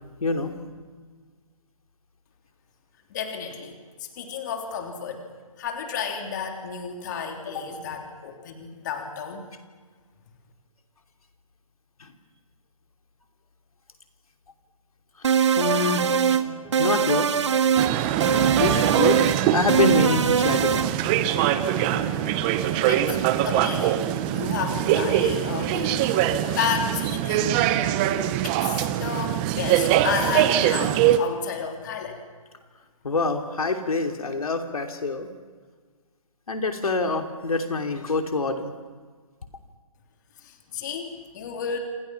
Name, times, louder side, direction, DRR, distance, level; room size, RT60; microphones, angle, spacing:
voice 1, 0.2-0.5 12.0-12.1 15.2-15.3 15.6-16.1 16.8-17.3 18.6-19.2 19.5-20.9 33.0-35.3 36.5-38.7, left 3 dB, 85° left, 5 dB, 3.0 m, -25 dB
voice 2, 3.1-5.2 5.6-9.4 22.9-23.2 23.4-24.0 24.3-27.7 28.4-32.2 40.4-41.8, left 6 dB, 35° left, 3 dB, 3.2 m, -32 dB
sound 1, 15.2-16.4 16.7-17.9 18.2-19.4 19.7-20.9, right 7 dB, 55° right, 1.4 m, -22 dB
sound 2, 15.6-25.9, right 2 dB, ahead, 5.0 m, -43 dB
sound 3, 17.8-31.2, right 12 dB, 15° right, 0.8 m, -23 dB
28.0 x 26.0 x 5.9 m, 1.5 s
hypercardioid pair, 165°, 18 cm